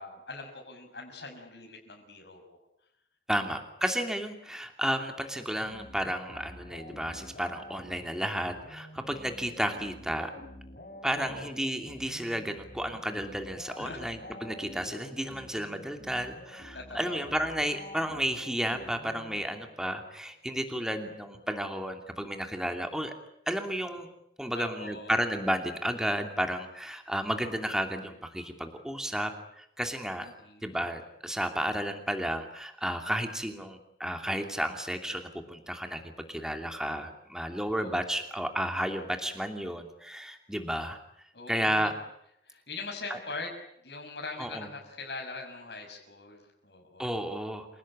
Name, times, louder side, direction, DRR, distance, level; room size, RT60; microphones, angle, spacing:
voice 1, 0.0-2.6 3.4-3.5 11.1-11.5 13.8-14.0 16.7-17.3 24.5-25.3 30.2-30.8 37.8-38.2 41.3-42.0 42.4-43.5 43.8-47.2, left 3 dB, 70° left, 2 dB, 6.1 m, -42 dB
voice 2, 3.3-10.3 11.0-23.1 23.5-24.1 24.4-30.3 30.6-41.0 41.5-42.0 43.1-43.2 44.4-44.7 47.0-47.7, equal, 5° right, 5 dB, 2.8 m, -32 dB
sound 1, 5.6-19.9, left 1 dB, 50° left, 5.1 m, -48 dB
28.5 x 17.5 x 10.0 m, 0.77 s
head